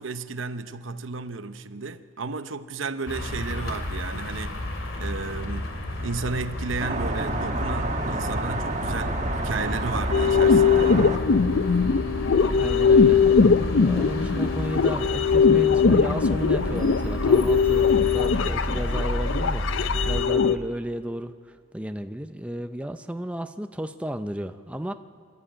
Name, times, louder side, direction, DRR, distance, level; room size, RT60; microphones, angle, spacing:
voice 1, 0.0-4.6 5.0-5.7 6.0-11.0, right 4 dB, 75° right, 0.8 m, -33 dB
sound 1, 3.1-20.2, left 1 dB, 85° left, 2.7 m, -31 dB
sound 2, 6.8-11.2, right 2 dB, 35° right, 1.4 m, -30 dB
sound 3, 10.1-20.6, left 5 dB, 70° left, 0.5 m, -20 dB
voice 2, 12.6-13.2 13.8-24.9, right 1 dB, 5° right, 0.5 m, -33 dB
26.0 x 12.5 x 8.8 m
head